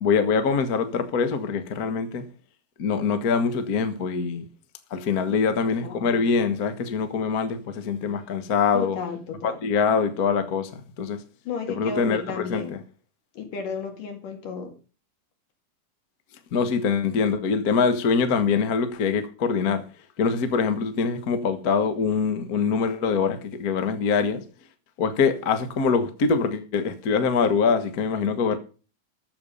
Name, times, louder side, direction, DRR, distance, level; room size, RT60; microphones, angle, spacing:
voice 1, 0.0-2.2 2.8-4.4 4.9-9.0 9.4-11.2 11.7-12.8 16.5-19.8 20.2-24.4 25.0-28.6, left 5 dB, 90° left, 0.8 m, -24 dB
voice 2, 5.8-6.3 8.7-9.6 11.5-12.8 13.4-14.7, left 5 dB, 70° left, 3.8 m, -33 dB
14.0 x 7.2 x 5.5 m
omnidirectional pair, 4.0 m